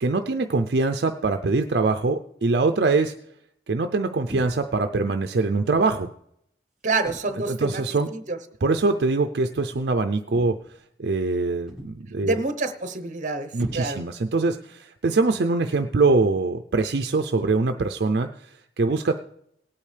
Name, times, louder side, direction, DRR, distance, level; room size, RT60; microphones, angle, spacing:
voice 1, 0.0-3.1 3.7-6.1 7.5-8.1 8.6-10.6 11.0-12.4 13.5-19.2, right 3 dB, 60° right, 6 dB, 0.5 m, -23 dB
sound 1, 4.3-4.8 5.7-6.0 7.0-7.5 8.6-8.9 10.3-10.8 11.7-12.2 13.6-14.3, equal, 5° right, 1.5 m, -41 dB
voice 2, 6.8-7.8 8.1-8.4 12.2-14.0, right 3 dB, 40° right, 11 dB, 0.9 m, -27 dB
18.5 x 8.6 x 3.3 m, 0.73 s
head